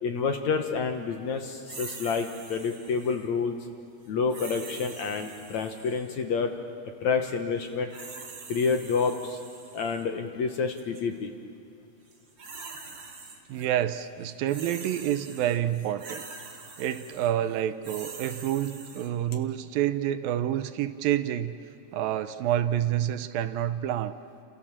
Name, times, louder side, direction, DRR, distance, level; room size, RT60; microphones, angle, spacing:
voice 1, 0.0-3.6 4.1-6.5 7.0-7.9 8.5-9.4 9.7-11.3, left 5 dB, 60° left, 5 dB, 2.2 m, -28 dB
sound 1, 1.7-3.3 4.3-6.2 7.6-10.0 10.8-11.0 12.1-13.7 14.0-19.1, right 4 dB, 35° right, 3.6 m, -44 dB
voice 2, 13.5-16.2 16.8-21.6 21.9-24.2, right 11 dB, 75° right, 11 dB, 2.4 m, -28 dB
29.0 x 27.5 x 7.4 m, 2.5 s
omnidirectional pair, 4.3 m